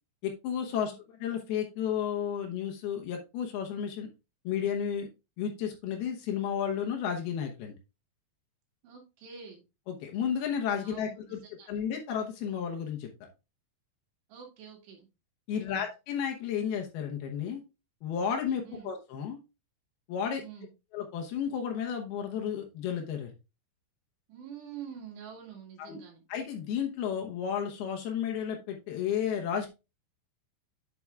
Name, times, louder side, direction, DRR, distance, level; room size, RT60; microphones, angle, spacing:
voice 1, 0.2-0.9 1.2-4.1 4.4-5.1 5.4-7.8 9.9-11.4 11.7-13.1 15.5-17.6 18.0-19.4 20.1-20.4 20.9-23.3 25.8-26.0 26.3-29.7, left 8 dB, 70° left, 3 dB, 2.6 m, -32 dB
voice 2, 8.8-9.6 10.8-11.7 14.3-15.1 15.5-15.9 18.6-18.9 20.4-20.7 24.3-26.2, right 7 dB, 70° right, 0 dB, 4.2 m, -47 dB
8.3 x 7.6 x 2.4 m, 0.27 s
omnidirectional pair, 5.1 m